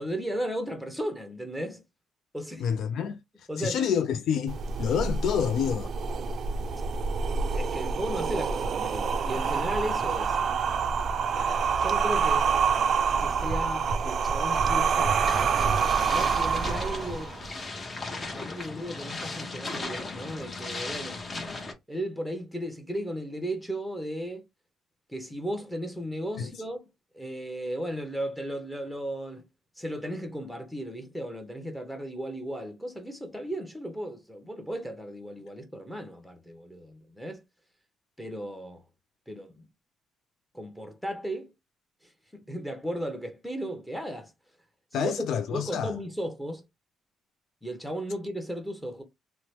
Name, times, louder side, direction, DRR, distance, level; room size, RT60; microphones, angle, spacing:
voice 1, 0.0-1.8 2.3-2.7 3.5-3.9 7.5-10.4 11.8-12.5 13.2-17.4 18.3-21.2 21.9-24.5 25.1-26.8 27.1-29.5 29.8-37.4 38.2-38.8 39.3-39.7 40.5-41.5 42.0-44.3 44.9-45.1 45.5-46.7 47.6-49.0, equal, 5° left, 0.8 m, -35 dB
voice 2, 2.6-3.2 3.6-5.9 26.4-26.5 44.9-46.0, left 8 dB, 75° left, 0.3 m, -28 dB
sound 1, 4.5-17.5, right 6 dB, 60° right, 0.3 m, -27 dB
sound 2, 15.2-21.7, left 3 dB, 30° left, 0.8 m, -37 dB
2.8 x 2.0 x 3.1 m
cardioid pair, 90°, 0 cm